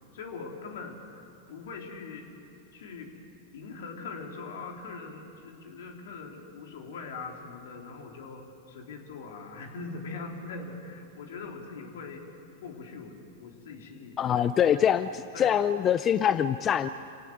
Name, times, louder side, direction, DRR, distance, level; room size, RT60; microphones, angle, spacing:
voice 1, 0.1-2.3 2.7-3.1 3.5-12.2 12.6-13.2 13.4-14.7 15.3-15.6, left 4 dB, 70° left, 2 dB, 3.8 m, -42 dB
voice 2, 14.2-16.9, left 9 dB, 30° left, 13 dB, 0.6 m, -24 dB
27.5 x 18.0 x 8.0 m, 2.8 s
hypercardioid pair, 110°, 0 cm